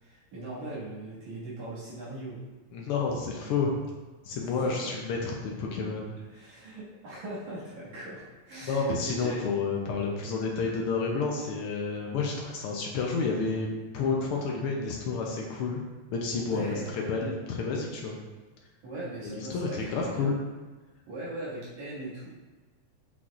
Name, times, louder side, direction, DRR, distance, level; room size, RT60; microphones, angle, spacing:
voice 1, 0.0-2.5 4.4-4.8 6.3-9.4 16.3-17.0 18.8-20.3 21.1-22.3, right 2 dB, 70° right, -9 dB, 3.3 m, -40 dB
voice 2, 2.7-3.7 4.2-6.1 8.6-13.7 13.9-15.8 16.1-18.2 19.3-20.3, left 4 dB, 90° left, -1 dB, 1.2 m, -30 dB
7.4 x 6.2 x 2.5 m, 1.3 s
omnidirectional pair, 3.4 m